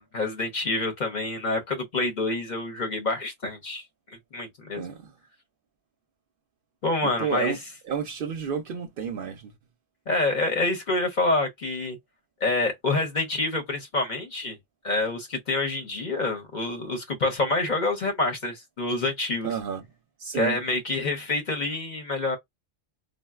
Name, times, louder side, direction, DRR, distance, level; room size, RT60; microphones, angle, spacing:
voice 1, 0.0-4.9 6.8-7.5 10.1-12.0 12.4-14.6 14.8-19.5 20.3-22.4, left 2 dB, 50° left, 0.7 m, -27 dB
voice 2, 4.7-5.1 7.0-7.6 7.8-9.5 19.4-19.8 20.2-20.6, right 7 dB, 60° right, 0.6 m, -31 dB
3.8 x 2.0 x 2.3 m
omnidirectional pair, 1.1 m